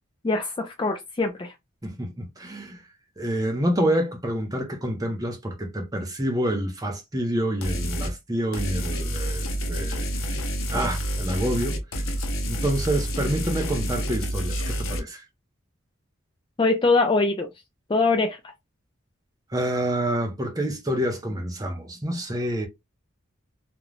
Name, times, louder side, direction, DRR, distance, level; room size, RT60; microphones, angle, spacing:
voice 1, 0.2-1.5 16.6-17.5 17.9-18.4, left 3 dB, 25° left, 0.3 m, -22 dB
voice 2, 1.8-2.8 3.2-10.1 10.7-11.8 12.5-15.2 19.5-22.7, right 1 dB, 20° right, 0.6 m, -27 dB
sound 1, 7.6-8.1 8.5-15.0, equal, 85° left, 0.7 m, -28 dB
2.5 x 2.1 x 3.2 m
head